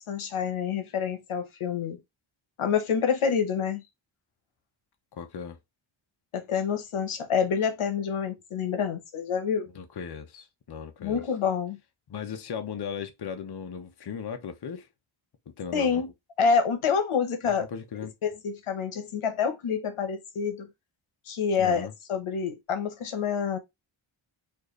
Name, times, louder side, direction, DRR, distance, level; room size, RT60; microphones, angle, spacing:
voice 1, 0.1-2.0 2.6-3.8 6.3-9.7 11.0-11.8 15.7-16.1 16.4-17.7 18.2-20.7 21.3-23.6, left 6 dB, 85° left, 1.0 m, -27 dB
voice 2, 5.1-5.6 9.7-11.2 12.1-14.9 15.6-16.0 17.5-18.1 21.6-21.9, left 7 dB, 55° left, 0.8 m, -37 dB
4.5 x 2.6 x 3.0 m
wide cardioid pair, 90°, 49 cm